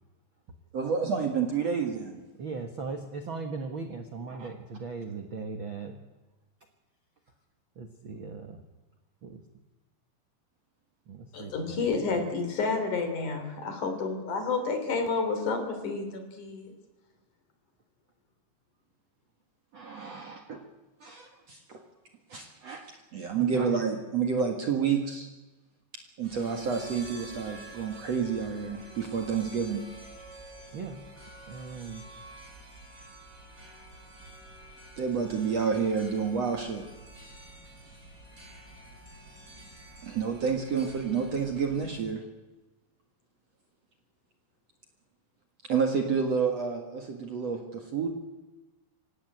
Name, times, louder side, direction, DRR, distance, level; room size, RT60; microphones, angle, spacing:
voice 1, 0.7-2.2 4.3-4.5 19.7-20.6 21.0-21.8 22.3-25.3 26.2-29.8 35.0-36.9 40.0-42.2 45.7-48.1, right 6 dB, 50° right, 3 dB, 2.3 m, -29 dB
voice 2, 2.4-6.0 7.7-8.6 9.2-9.4 11.1-12.3 23.4-23.8 30.7-31.0 31.5-32.0, right 4 dB, 70° right, 5 dB, 1.2 m, -38 dB
voice 3, 11.3-16.7, left 4 dB, 50° left, 7 dB, 4.3 m, -30 dB
sound 1, 26.2-42.0, right 1 dB, 20° right, 6.4 m, -49 dB
25.0 x 16.5 x 9.2 m, 1.1 s
omnidirectional pair, 4.8 m